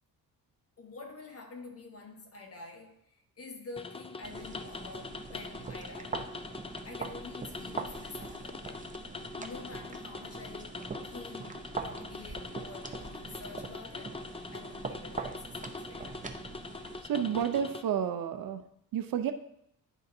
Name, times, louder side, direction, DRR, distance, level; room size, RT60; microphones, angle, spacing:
voice 1, 0.8-3.0 3.4-6.2 6.8-8.9 9.4-14.2 14.5-16.2, left 3 dB, 40° left, 1.3 m, -48 dB
sound 1, 3.8-17.8, left 3 dB, 15° left, 0.4 m, -43 dB
sound 2, 4.2-17.0, right 4 dB, 20° right, 0.6 m, -43 dB
voice 2, 17.0-18.6 18.9-19.3, right 8 dB, 65° right, 0.6 m, -30 dB
10.5 x 3.8 x 2.6 m
cardioid pair, 80°, 37 cm